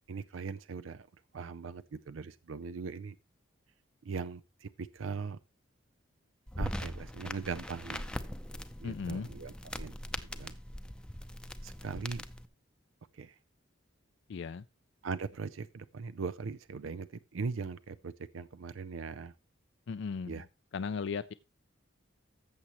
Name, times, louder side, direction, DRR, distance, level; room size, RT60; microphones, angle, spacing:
voice 1, 0.1-1.1 1.3-3.2 4.0-5.4 6.6-8.1 8.8-9.9 10.2-10.6 11.6-12.2 13.1-13.4 15.0-19.3 20.3-20.5, right 5 dB, 85° right, 0.5 m, -40 dB
sound 1, 6.5-12.5, left 1 dB, 5° left, 0.6 m, -41 dB
voice 2, 8.8-9.3 14.3-14.6 19.9-20.4 20.7-21.3, left 5 dB, 65° left, 0.4 m, -36 dB
14.5 x 6.9 x 3.0 m
head